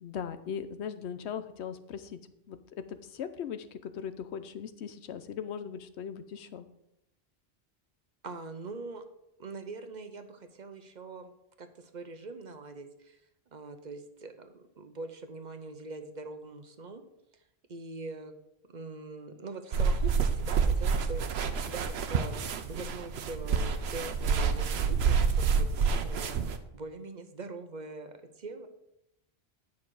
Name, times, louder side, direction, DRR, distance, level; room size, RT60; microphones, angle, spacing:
voice 1, 0.0-2.2 2.5-2.6 2.9-6.7, left 7 dB, 90° left, 11 dB, 1.0 m, -39 dB
voice 2, 8.2-9.0 9.4-11.3 11.6-13.2 13.5-17.0 17.7-18.3 18.7-28.7, right 3 dB, 45° right, 8 dB, 0.8 m, -43 dB
sound 1, 19.7-26.6, right 5 dB, 80° right, 1.0 m, -28 dB
9.9 x 5.9 x 4.7 m, 0.84 s
omnidirectional pair, 1.1 m